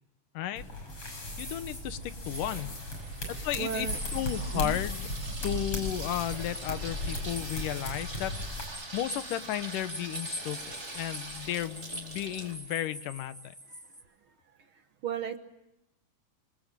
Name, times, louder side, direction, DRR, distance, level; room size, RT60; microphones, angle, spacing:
sound 1, 0.6-8.6, left 1 dB, 45° left, 7.7 m, -37 dB
Water tap faucet / Sink (filling or washing), 1.3-12.5, right 2 dB, 30° right, 4.7 m, -44 dB
voice 1, 1.4-2.7 3.3-3.9 4.1-5.1 5.4-8.7 8.9-13.5, left 12 dB, 85° left, 12 dB, 2.7 m, -34 dB
sound 2, 1.4-14.0, equal, 5° left, 1.5 m, -45 dB
voice 2, 3.0-4.3 4.5-4.8 5.4-5.5 8.8-8.9 13.7-13.8 14.7-15.4, right 8 dB, 55° right, 8 dB, 1.7 m, -37 dB
26.5 x 24.5 x 7.5 m, 0.91 s
omnidirectional pair, 3.7 m